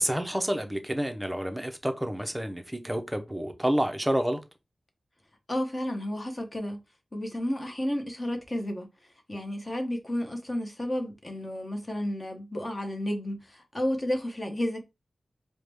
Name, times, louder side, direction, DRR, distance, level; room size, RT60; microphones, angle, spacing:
voice 1, 0.0-4.4, right 1 dB, 10° right, 0.6 m, -29 dB
voice 2, 5.5-6.8 7.1-8.9 9.3-14.8, left 1 dB, 25° left, 1.0 m, -32 dB
4.7 x 2.1 x 3.4 m
wide cardioid pair, 100°, 0 cm